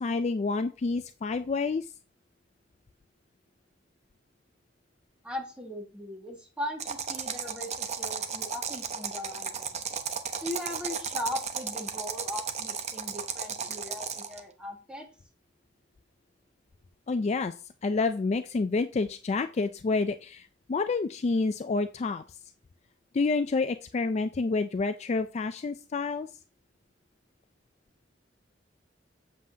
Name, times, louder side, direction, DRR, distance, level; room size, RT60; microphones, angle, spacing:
voice 1, 0.0-1.9 17.1-17.5 17.8-22.2 23.1-26.3, left 3 dB, 35° left, 9 dB, 0.4 m, -28 dB
voice 2, 5.2-9.8 10.4-15.1, left 1 dB, 5° right, 0 dB, 1.7 m, -38 dB
sound 1, 6.8-14.4, right 6 dB, 40° right, 0.7 m, -34 dB
7.5 x 7.4 x 2.8 m, 0.35 s
head